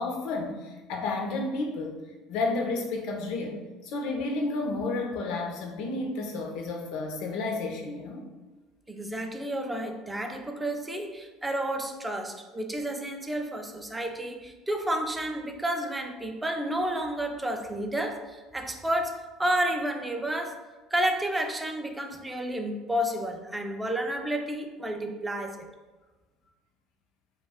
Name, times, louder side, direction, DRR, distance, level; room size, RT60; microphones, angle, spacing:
voice 1, 0.0-2.0 2.3-8.2, left 3 dB, 70° left, 2 dB, 0.5 m, -31 dB
voice 2, 8.9-20.6 20.9-25.7, right 1 dB, 10° right, 4 dB, 0.4 m, -31 dB
2.3 x 2.2 x 3.5 m, 1.2 s
supercardioid pair, 95°, 0 cm